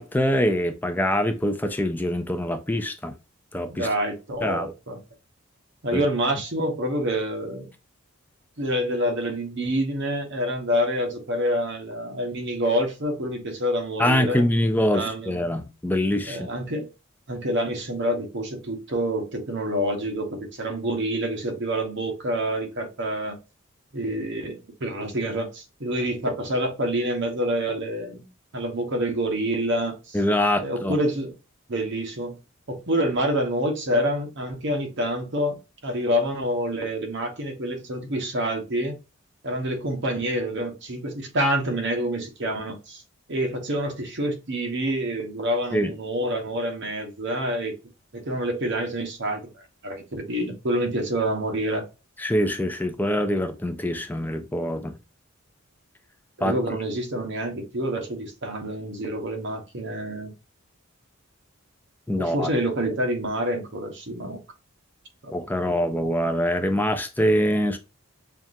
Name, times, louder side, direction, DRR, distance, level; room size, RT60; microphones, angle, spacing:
voice 1, 0.0-3.1 3.5-3.9 4.4-4.7 5.9-6.0 14.0-16.5 30.1-31.0 45.7-45.9 52.2-55.0 56.4-56.5 62.1-62.5 65.3-67.8, equal, 10° left, 0.4 m, -24 dB
voice 2, 3.7-5.0 5.8-7.7 8.6-14.6 14.9-15.4 16.3-16.9 17.3-23.4 23.9-28.3 28.5-30.2 30.6-31.3 31.7-32.4 32.7-35.6 35.8-39.0 39.4-43.0 43.3-47.8 48.1-49.4 49.8-51.9 56.4-60.3 62.2-64.4 65.2-65.3 65.7-65.8, equal, 55° right, 1.0 m, -27 dB
5.7 x 2.5 x 2.6 m
head